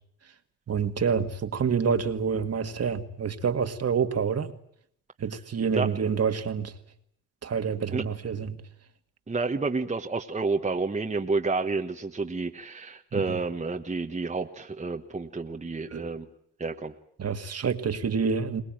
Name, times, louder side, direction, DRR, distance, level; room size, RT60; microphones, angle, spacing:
voice 1, 0.7-4.5 5.2-6.7 7.4-8.6 13.1-13.4 15.9-16.1 17.2-18.6, right 6 dB, 45° right, 2.0 m, -27 dB
voice 2, 9.3-16.3 16.6-16.9, right 3 dB, 20° right, 1.4 m, -30 dB
23.0 x 19.5 x 9.0 m
cardioid pair, 75°, 34 cm